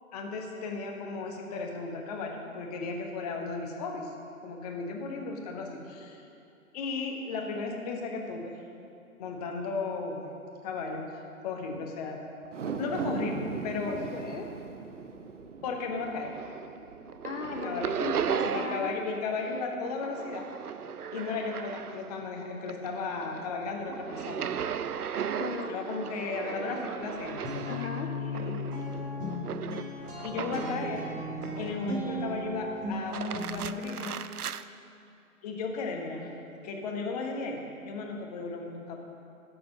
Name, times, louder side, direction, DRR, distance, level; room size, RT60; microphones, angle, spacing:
voice 1, 0.1-4.1 4.4-6.2 6.7-8.6 9.2-10.3 10.6-11.0 11.4-12.2 12.8-13.9 15.6-16.4 17.5-18.0 18.4-20.4 21.1-24.5 25.7-27.7 28.2-29.0 30.2-31.0 31.6-34.4 35.4-36.4 36.6-39.0, left 4 dB, 25° left, 1 dB, 1.3 m, -35 dB
sound 1, 12.4-18.9 19.4-19.5, right 5 dB, 55° right, 0.8 m, -39 dB
voice 2, 13.9-14.5 17.2-18.9 25.4-25.7 27.7-28.1, left 6 dB, 50° left, 3 dB, 0.8 m, -37 dB
sound 2, 16.1-16.8 17.1-19.1 19.4-22.2 22.6-30.9 31.4-32.1 32.9-34.6, right 8 dB, 80° right, 0.5 m, -36 dB
sound 3, 27.0-33.9, left 1 dB, 25° right, 2.4 m, -36 dB
17.5 x 7.0 x 5.4 m, 2.7 s
figure-of-eight pair, 130°, 45 cm